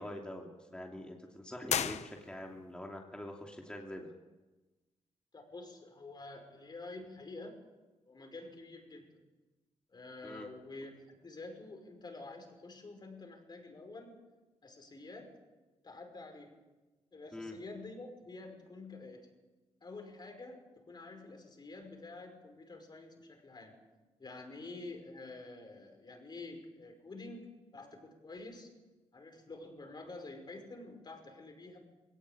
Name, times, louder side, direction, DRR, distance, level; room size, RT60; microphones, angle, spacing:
voice 1, 0.0-4.1 10.2-10.5 17.3-17.5, left 1 dB, 10° left, 0 dB, 2.8 m, -45 dB
sound 1, 1.6-2.7, left 9 dB, 75° left, 0.9 m, -35 dB
voice 2, 5.3-7.6 8.1-9.2 9.9-14.2 14.6-15.4 15.8-16.6 17.1-19.3 19.8-23.7 24.2-28.7 29.1-31.8, left 2 dB, 40° left, 4 dB, 5.4 m, -48 dB
21.0 x 18.0 x 8.7 m, 1.2 s
cardioid pair, 95°, 11 cm